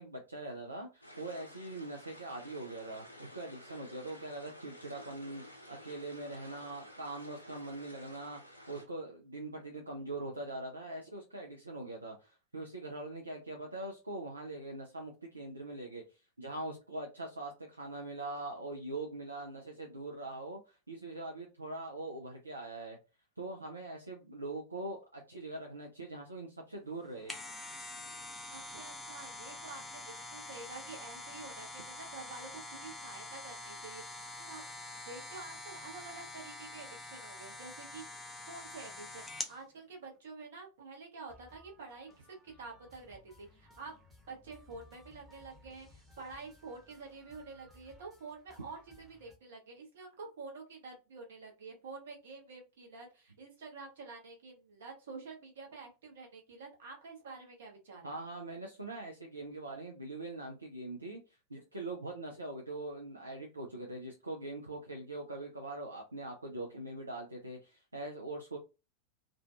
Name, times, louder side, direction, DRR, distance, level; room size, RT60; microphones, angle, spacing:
voice 1, 0.0-16.0 16.4-23.0 23.4-27.3 58.0-61.2 61.5-68.6, right 2 dB, 80° right, 0 dB, 0.4 m, -42 dB
sound 1, 1.0-8.8, equal, 85° left, 0.6 m, -53 dB
sound 2, 27.0-39.6 40.0-40.1, left 2 dB, 10° left, 0.5 m, -45 dB
voice 2, 28.5-34.6 35.1-38.0 38.5-43.9 44.3-58.1, right 4 dB, 60° right, 1 dB, 0.9 m, -48 dB
sound 3, 41.3-49.4, left 1 dB, 5° right, 0.9 m, -61 dB
2.4 x 2.2 x 2.4 m, 0.30 s
figure-of-eight pair, 90°, 0 cm